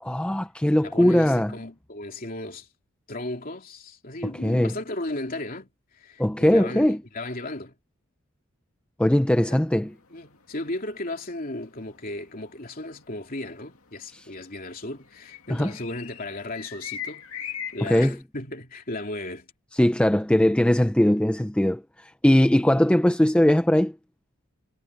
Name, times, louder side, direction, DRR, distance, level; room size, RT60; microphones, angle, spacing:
voice 1, 0.0-1.5 4.4-4.7 6.2-7.0 9.0-9.9 14.1-14.2 15.5-15.7 17.8-18.2 19.8-23.9, left 1 dB, 5° left, 0.4 m, -20 dB
voice 2, 0.8-2.7 3.1-7.7 9.5-9.6 10.1-17.2 17.7-19.5, left 2 dB, 40° left, 3.1 m, -35 dB
sound 1, 9.7-18.2, left 9 dB, 85° left, 2.5 m, -41 dB
head